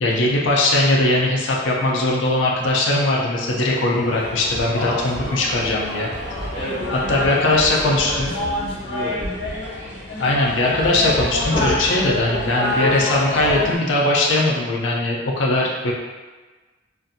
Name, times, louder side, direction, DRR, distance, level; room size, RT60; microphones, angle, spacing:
voice 1, 0.0-6.1 7.1-8.3 10.2-15.9, left 2 dB, 80° left, -3 dB, 0.5 m, -20 dB
sound 1, 3.5-8.5, right 2 dB, 55° right, 0.4 m, -38 dB
sound 2, 4.1-13.8, left 1 dB, 65° left, 0.9 m, -27 dB
voice 2, 6.5-9.4, left 1 dB, 30° left, -6 dB, 0.5 m, -31 dB
2.5 x 2.5 x 2.6 m, 1.3 s
head